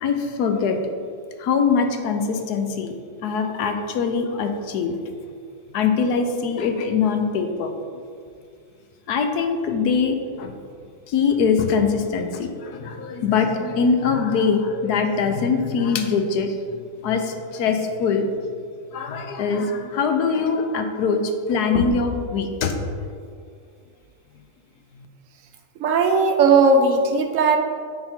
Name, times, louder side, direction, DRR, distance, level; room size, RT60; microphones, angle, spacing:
voice 1, 0.0-0.8 1.4-2.9 3.2-5.1 5.7-7.7 9.1-10.5 11.1-16.8 17.0-18.3 18.9-22.8 25.0-25.1, left 5 dB, 85° left, 6 dB, 1.3 m, -22 dB
voice 2, 25.8-27.6, right 4 dB, 65° right, 5 dB, 0.9 m, -17 dB
9.4 x 4.5 x 4.3 m, 2.2 s
omnidirectional pair, 1.6 m